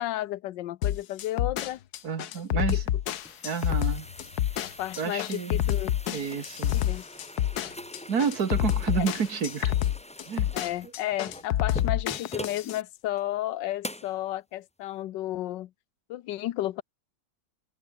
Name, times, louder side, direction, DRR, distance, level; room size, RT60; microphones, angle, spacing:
voice 1, 0.0-1.8 2.5-2.8 4.6-5.9 6.7-7.0 9.0-9.1 10.5-15.7 16.1-16.8, left 14 dB, 85° left, 1.4 m, -33 dB
sound 1, 0.8-12.8, left 11 dB, 65° left, 1.3 m, -28 dB
voice 2, 2.0-2.8 3.4-4.1 5.0-5.6 6.1-6.8 8.1-9.7 10.3-10.5, right 6 dB, 60° right, 2.1 m, -30 dB
sound 2, 2.8-12.7 13.2-13.3 13.8-14.2, left 1 dB, 5° left, 0.7 m, -43 dB
omnidirectional pair, 1.9 m